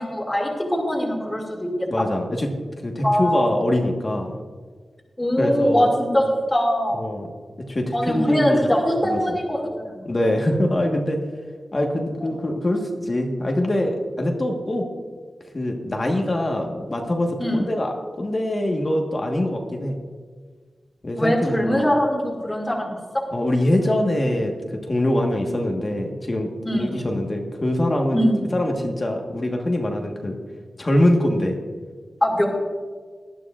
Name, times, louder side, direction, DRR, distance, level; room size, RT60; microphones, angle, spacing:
voice 1, 0.0-1.9 3.0-3.5 5.2-7.0 7.9-10.1 17.4-17.6 21.2-23.0 26.7-26.9 28.1-28.4 32.2-32.5, equal, 15° left, -3 dB, 2.3 m, -22 dB
voice 2, 1.9-2.5 2.8-4.4 5.4-5.9 6.9-7.3 7.7-8.7 9.0-9.2 10.0-11.2 11.7-14.9 15.5-20.0 21.0-21.8 23.3-28.2 28.5-30.4 30.8-31.6, left 1 dB, 30° left, 1 dB, 1.3 m, -23 dB
18.5 x 12.0 x 2.4 m, 1.5 s
wide cardioid pair, 115°, 0 cm